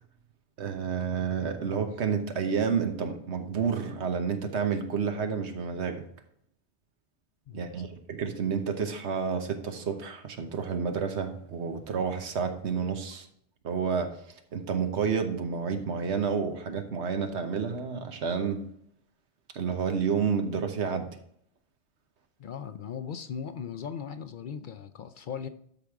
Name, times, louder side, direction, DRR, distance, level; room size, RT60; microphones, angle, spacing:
voice 1, 0.6-6.0 7.5-13.3 13.6-14.1 14.5-18.6 19.5-21.1, right 6 dB, 85° right, 1.3 m, -30 dB
voice 2, 7.5-7.9 22.4-25.5, left 7 dB, 60° left, 0.6 m, -38 dB
12.0 x 5.0 x 3.6 m
omnidirectional pair, 1.1 m